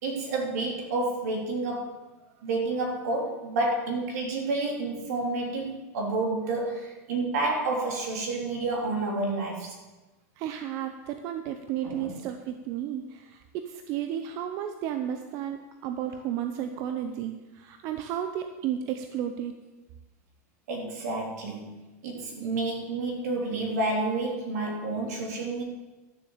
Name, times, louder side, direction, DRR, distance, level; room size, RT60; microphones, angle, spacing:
voice 1, 0.0-2.1 2.4-9.8 11.8-12.2 20.7-25.6, right 2 dB, 75° right, 0 dB, 3.4 m, -30 dB
voice 2, 10.4-19.6, right 10 dB, 40° right, 7 dB, 0.7 m, -33 dB
12.5 x 7.3 x 7.2 m, 1.2 s
supercardioid pair, 155°, 9 cm